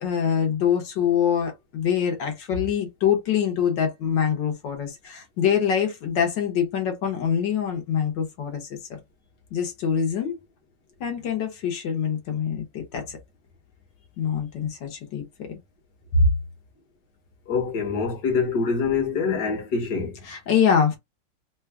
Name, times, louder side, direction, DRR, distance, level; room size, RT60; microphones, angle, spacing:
voice 1, 0.0-9.0 9.5-10.4 11.0-13.2 14.2-15.2 16.1-16.3 20.2-21.0, left 7 dB, 75° left, 1.7 m, -24 dB
voice 2, 17.5-20.2, left 5 dB, 55° left, 1.7 m, -25 dB
3.7 x 2.3 x 3.5 m
omnidirectional pair, 2.0 m